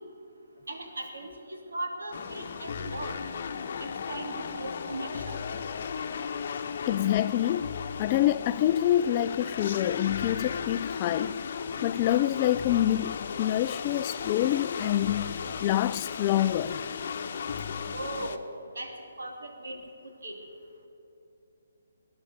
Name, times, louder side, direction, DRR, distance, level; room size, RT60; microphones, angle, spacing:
voice 1, 0.7-3.2 3.8-5.4 17.9-18.4 18.8-18.9 19.2-19.8 20.2-20.3, right 2 dB, 75° right, 2.6 m, -38 dB
sound 1, 2.1-18.4, left 6 dB, 50° left, 0.9 m, -35 dB
voice 2, 6.9-11.4 11.8-16.8, left 13 dB, 30° left, 0.3 m, -27 dB
18.5 x 10.5 x 6.9 m
figure-of-eight pair, 145°, 0 cm